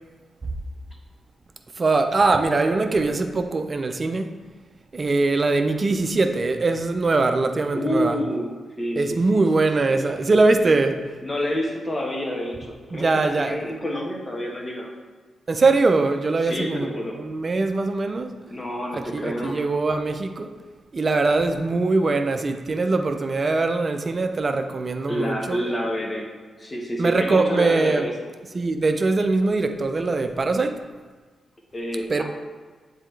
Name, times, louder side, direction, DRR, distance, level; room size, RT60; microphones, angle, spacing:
voice 1, 1.8-4.4 4.9-8.2 9.0-11.1 12.9-13.6 15.5-18.3 18.9-20.5 20.9-25.6 27.0-28.1 28.5-30.8 32.1-32.2, right 3 dB, 45° right, 7 dB, 0.5 m, -22 dB
voice 2, 7.7-8.5 8.8-9.1 9.3-9.6 9.9-10.1 11.2-14.9 16.4-17.2 18.5-19.6 25.1-26.3 26.6-28.1 31.7-32.2, equal, 30° left, -1 dB, 1.4 m, -28 dB
7.4 x 4.1 x 3.4 m, 1.4 s
supercardioid pair, 40°, 0 cm